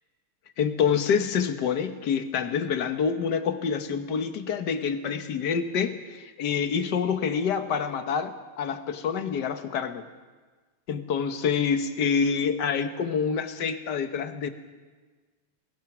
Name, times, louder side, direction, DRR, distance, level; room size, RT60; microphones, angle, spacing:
voice 1, 0.6-10.1 10.9-14.5, left 6 dB, 55° left, 8 dB, 1.7 m, -27 dB
21.5 x 20.0 x 6.1 m, 1.4 s
omnidirectional pair, 2.4 m